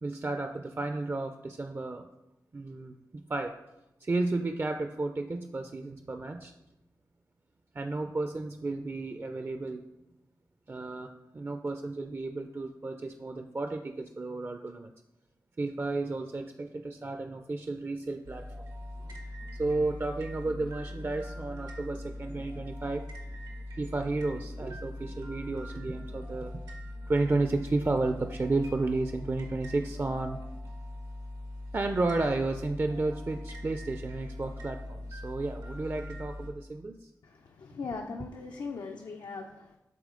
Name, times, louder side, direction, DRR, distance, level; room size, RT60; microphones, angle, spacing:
voice 1, 0.0-2.1 2.5-2.9 3.3-3.5 4.0-6.5 7.7-9.8 10.7-14.9 15.6-18.5 19.5-23.0 23.8-26.6 27.1-30.4 31.7-37.1, right 2 dB, 35° right, 7 dB, 0.4 m, -32 dB
sound 1, 18.2-36.5, left 1 dB, 85° right, 1.1 m, -41 dB
voice 2, 37.2-39.8, left 4 dB, 75° left, 2 dB, 0.5 m, -40 dB
8.3 x 3.6 x 3.7 m, 0.94 s
cardioid pair, 45°, 7 cm